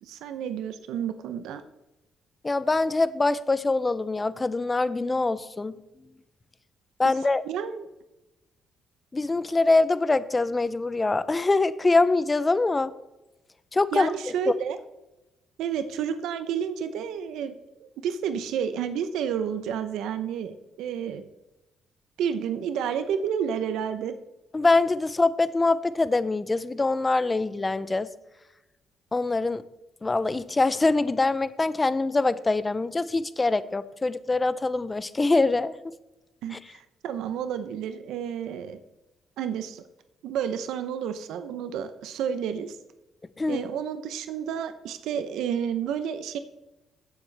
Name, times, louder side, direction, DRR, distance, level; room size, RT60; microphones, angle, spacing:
voice 1, 0.0-1.6 7.5-7.9 13.9-14.8 15.6-21.3 22.2-24.1 36.4-38.8 39.4-39.8 40.2-42.8 43.5-46.4, right 8 dB, 85° right, 10 dB, 0.7 m, -30 dB
voice 2, 2.4-5.8 7.0-7.4 9.1-12.9 13.7-14.5 24.5-28.1 29.1-29.6 30.0-35.7 36.5-36.6 43.4-43.6, left 3 dB, 20° left, 16 dB, 0.6 m, -24 dB
16.0 x 7.2 x 3.4 m, 0.99 s
cardioid pair, 90°, 0 cm